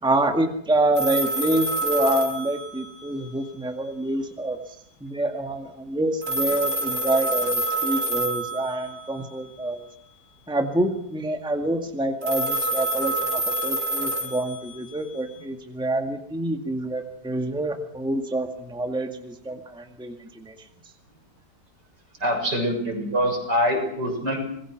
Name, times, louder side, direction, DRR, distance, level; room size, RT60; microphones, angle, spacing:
voice 1, 0.0-4.6 5.0-9.9 10.5-20.6, right 1 dB, 5° right, 4 dB, 1.9 m, -27 dB
sound 1, 0.9-3.3 6.2-9.1 12.2-15.1, right 2 dB, 55° right, 5.0 m, -27 dB
voice 2, 22.2-24.4, equal, 75° right, 2 dB, 7.6 m, -24 dB
26.5 x 21.0 x 6.2 m, 0.70 s
omnidirectional pair, 1.9 m